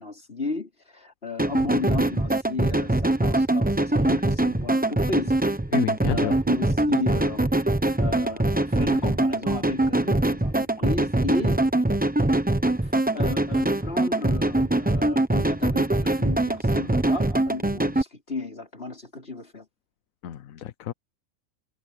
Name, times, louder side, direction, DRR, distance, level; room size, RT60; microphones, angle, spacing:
voice 1, 0.0-5.4 6.0-7.5 8.0-11.6 12.8-19.7, left 3 dB, 45° left, 5.0 m, -34 dB
sound 1, 1.4-18.0, right 1 dB, 10° right, 0.7 m, -23 dB
voice 2, 5.7-6.3 20.2-20.9, left 12 dB, 75° left, 1.2 m, -30 dB
omnidirectional pair, 1.4 m